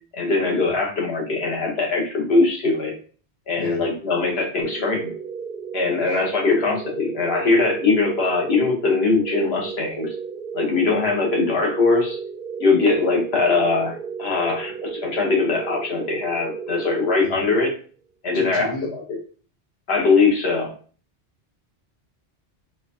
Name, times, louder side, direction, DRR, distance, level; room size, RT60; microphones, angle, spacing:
voice 1, 0.1-2.9 3.5-5.1 5.7-10.1 10.5-12.2 12.6-17.7 18.2-19.0 19.9-20.7, left 3 dB, 70° left, 0 dB, 1.1 m, -21 dB
sound 1, 4.6-17.7, right 6 dB, 60° right, 0.7 m, -34 dB
voice 2, 18.3-18.9, left 2 dB, 50° left, 0 dB, 0.8 m, -33 dB
4.1 x 2.3 x 2.6 m, 0.41 s
omnidirectional pair, 1.1 m